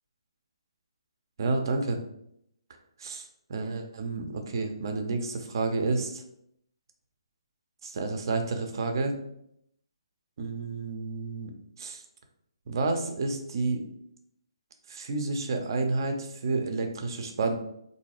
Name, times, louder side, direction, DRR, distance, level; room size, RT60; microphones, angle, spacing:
voice 1, 1.4-2.0 3.0-6.2 7.8-9.2 10.4-11.5 11.8-12.0 12.7-13.8 14.9-17.5, right 3 dB, 50° right, 4 dB, 0.6 m, -30 dB
3.7 x 2.7 x 2.9 m, 0.74 s
figure-of-eight pair, 140°, 3 cm